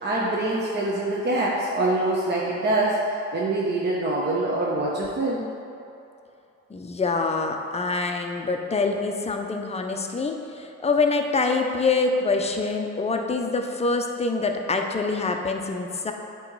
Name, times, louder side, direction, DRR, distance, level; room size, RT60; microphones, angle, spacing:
voice 1, 0.0-3.0 3.3-5.5, right 2 dB, 35° right, -5 dB, 0.9 m, -24 dB
voice 2, 6.7-16.1, left 3 dB, 20° left, 3 dB, 0.6 m, -25 dB
8.4 x 3.1 x 4.6 m, 2.7 s
cardioid pair, 90°, 30 cm